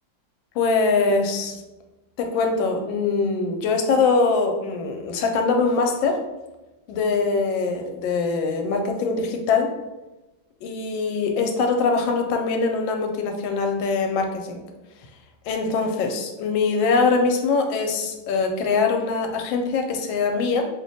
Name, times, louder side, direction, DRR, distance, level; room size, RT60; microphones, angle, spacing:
voice 1, 0.5-1.6 2.2-6.2 6.9-9.7 10.6-14.6 15.5-20.6, left 4 dB, 85° left, 4 dB, 1.3 m, -23 dB
3.0 x 2.1 x 4.0 m, 1.1 s
omnidirectional pair, 2.0 m